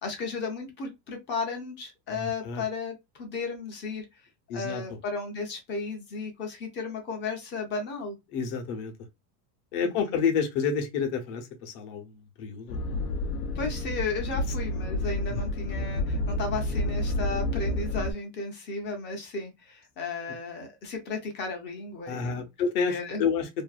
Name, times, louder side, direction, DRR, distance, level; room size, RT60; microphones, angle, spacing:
voice 1, 0.0-4.1 4.5-8.2 10.0-10.1 13.6-22.4 22.9-23.2, left 4 dB, 25° left, 0.4 m, -34 dB
voice 2, 2.1-2.6 4.5-4.8 8.3-8.9 9.7-12.8 15.3-15.4 22.0-23.6, left 6 dB, 50° left, 0.8 m, -29 dB
sound 1, 12.7-18.1, left 1 dB, 85° left, 0.6 m, -30 dB
2.6 x 2.4 x 2.2 m
supercardioid pair, 155°, 49 cm